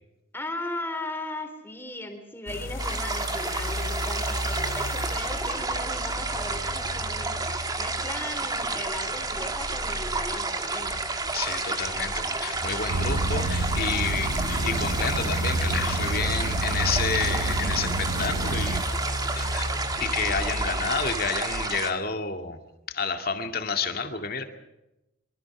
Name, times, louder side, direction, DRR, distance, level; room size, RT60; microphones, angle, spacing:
voice 1, 0.3-11.0, left 1 dB, 10° left, 6 dB, 3.8 m, -37 dB
sound 1, 2.5-21.3, left 1 dB, 75° left, 2.5 m, -34 dB
sound 2, 2.8-21.9, right 3 dB, 20° right, 1.8 m, -30 dB
voice 2, 11.3-18.9 19.3-19.7 20.0-22.6 22.9-24.4, left 5 dB, 45° left, 6 dB, 2.3 m, -30 dB
sound 3, 12.9-18.8, right 2 dB, 85° right, 0.8 m, -30 dB
24.0 x 24.0 x 6.1 m, 0.93 s
head